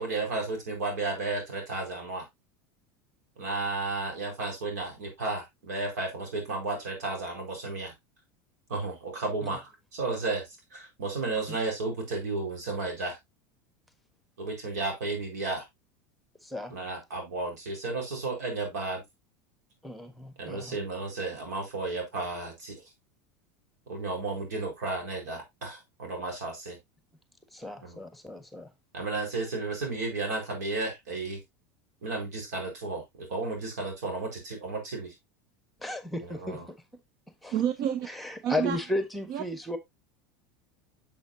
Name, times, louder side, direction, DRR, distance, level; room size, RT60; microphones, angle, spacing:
voice 1, 0.0-2.3 3.4-7.9 8.7-13.2 14.4-15.6 16.7-19.0 20.4-22.8 23.9-26.8 27.8-28.0 28.9-31.4 32.0-35.1 36.2-36.7, right 3 dB, 90° right, 4.6 m, -33 dB
voice 2, 16.4-16.7 19.8-20.8 27.5-28.7 35.8-36.6 37.4-37.5 38.1-39.8, left 1 dB, ahead, 1.5 m, -34 dB
voice 3, 37.5-38.1 38.4-38.8 39.3-39.4, right 10 dB, 55° right, 0.8 m, -28 dB
8.0 x 7.0 x 2.8 m
supercardioid pair, 110°, 9 cm